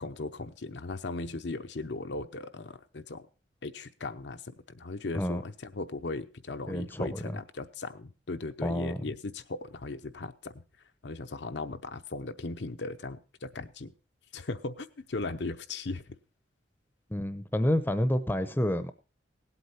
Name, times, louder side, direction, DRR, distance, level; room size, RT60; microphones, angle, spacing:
voice 1, 0.0-3.3 3.6-4.4 4.7-10.6 11.0-13.9 14.3-16.2, left 3 dB, 70° left, 0.8 m, -38 dB
voice 2, 6.7-7.3 8.6-9.0 17.1-18.9, left 1 dB, 10° left, 0.7 m, -29 dB
17.5 x 8.2 x 4.2 m
head